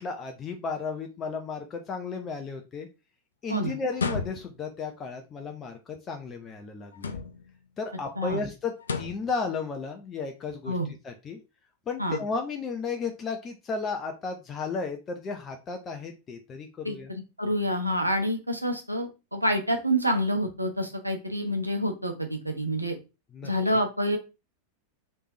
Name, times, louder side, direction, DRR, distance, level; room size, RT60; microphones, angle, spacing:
voice 1, 0.0-2.9 3.4-7.1 7.8-10.8 11.0-11.4 11.9-17.1 23.3-23.5, left 4 dB, 25° left, 4 dB, 0.6 m, -34 dB
sound 1, 3.9-4.7 6.9-7.6 8.8-9.3, left 5 dB, 70° left, 0.4 m, -32 dB
voice 2, 16.8-23.0 23.4-24.2, equal, 85° right, 3 dB, 0.8 m, -28 dB
3.4 x 3.2 x 2.7 m, 0.28 s
figure-of-eight pair, 90°, 0 cm